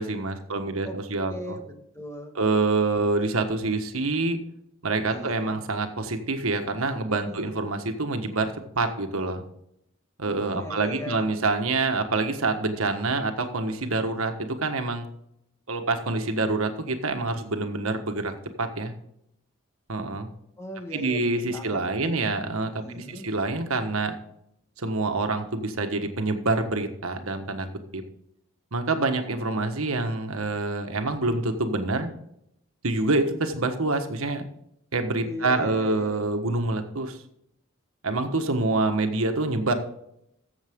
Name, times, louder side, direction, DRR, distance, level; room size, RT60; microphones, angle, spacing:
voice 1, 0.0-1.6 2.3-4.4 4.8-8.5 8.7-9.4 10.2-15.1 15.7-18.9 19.9-20.3 20.9-24.1 24.8-27.7 27.9-28.0 28.7-32.1 32.8-34.4 34.9-37.2 38.0-39.7, right 3 dB, 80° right, 6 dB, 1.5 m, -26 dB
voice 2, 1.2-2.4 5.1-5.6 7.3-7.6 10.5-11.4 20.6-22.1 22.5-23.3 35.2-36.2, left 1 dB, 15° left, 4 dB, 1.4 m, -39 dB
14.5 x 7.3 x 3.7 m, 0.74 s
head